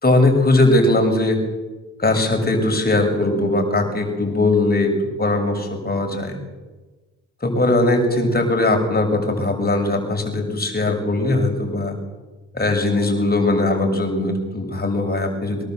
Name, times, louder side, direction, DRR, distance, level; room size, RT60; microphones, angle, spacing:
voice 1, 0.0-1.4 2.0-4.9 5.2-6.4 7.4-11.9 12.5-15.6, left 2 dB, 30° left, 3 dB, 6.9 m, -19 dB
23.5 x 20.5 x 8.1 m, 1.2 s
supercardioid pair, 55°, 30 cm